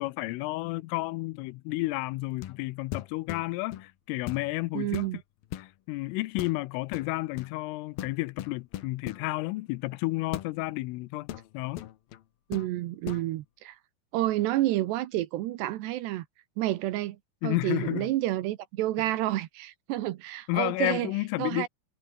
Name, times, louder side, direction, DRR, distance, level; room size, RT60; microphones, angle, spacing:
voice 1, 0.0-5.1 5.6-11.9 17.4-18.1 20.5-21.7, left 21 dB, 85° left, 3.2 m, -31 dB
sound 1, 2.4-2.6 2.9-3.9 4.3-4.5 4.9-5.7 6.4-6.6 6.9-7.5 8.0-9.3 10.3-10.5 11.3-12.2 12.5-12.7 13.0-13.3, left 13 dB, 70° left, 2.4 m, -39 dB
voice 2, 4.7-5.2 12.5-13.8 14.1-16.3 16.6-17.2 17.4-21.1 21.4-21.7, right 15 dB, 75° right, 2.7 m, -29 dB
omnidirectional pair, 5.9 m